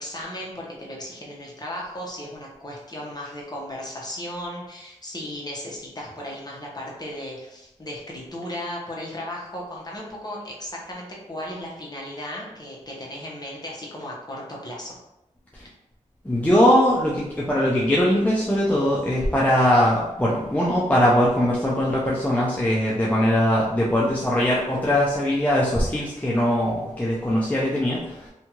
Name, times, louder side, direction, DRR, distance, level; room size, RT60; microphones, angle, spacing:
voice 1, 0.0-15.0, left 1 dB, 30° left, -3 dB, 0.9 m, -35 dB
voice 2, 16.2-28.3, equal, 10° left, -5 dB, 0.5 m, -21 dB
2.7 x 2.3 x 2.9 m, 0.89 s
cardioid pair, 65°, 13 cm